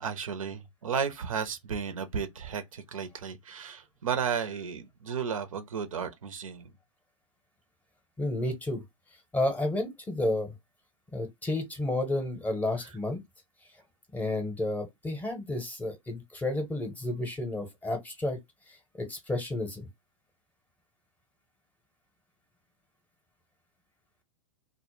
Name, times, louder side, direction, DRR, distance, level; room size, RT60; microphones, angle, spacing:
voice 1, 0.0-6.7, right 6 dB, 85° right, 0.5 m, -33 dB
voice 2, 8.2-8.8 9.3-10.5 11.1-13.2 14.1-18.4 18.9-19.9, left 1 dB, 10° left, 0.6 m, -31 dB
2.0 x 2.0 x 3.0 m
hypercardioid pair, 115°, 17 cm